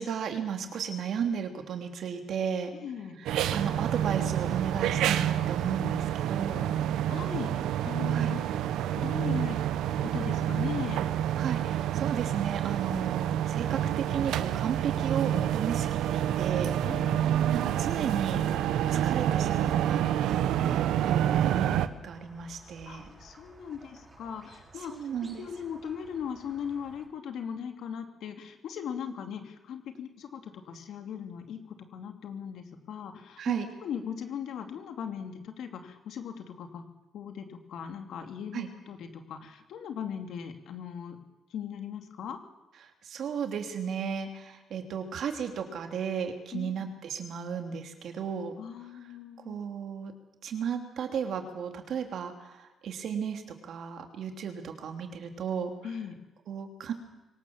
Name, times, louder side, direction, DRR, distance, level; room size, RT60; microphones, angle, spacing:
voice 1, 0.0-2.7 3.2-6.7 8.0-8.4 11.3-16.7 17.3-20.1 20.6-21.8 22.0-23.1 24.8-25.4 33.4-33.7 38.5-38.7 43.0-48.6 49.4-50.1 50.4-55.7 56.5-56.9, right 7 dB, 65° right, 5 dB, 3.0 m, -34 dB
voice 2, 2.8-3.2 6.7-6.8 7.1-8.5 9.0-9.6 10.0-11.0 16.8-17.3 22.9-25.0 25.4-33.4 33.8-36.8 37.1-41.2 41.5-42.4 46.5-46.9 48.6-49.6 55.8-56.2, left 8 dB, 75° left, 6 dB, 2.7 m, -39 dB
sound 1, 3.3-21.9, right 11 dB, 85° right, 1.1 m, -28 dB
Squeak, 22.0-27.1, right 2 dB, 20° right, 6.2 m, -55 dB
24.0 x 18.5 x 7.4 m, 1.1 s
cardioid pair, 90°, 0 cm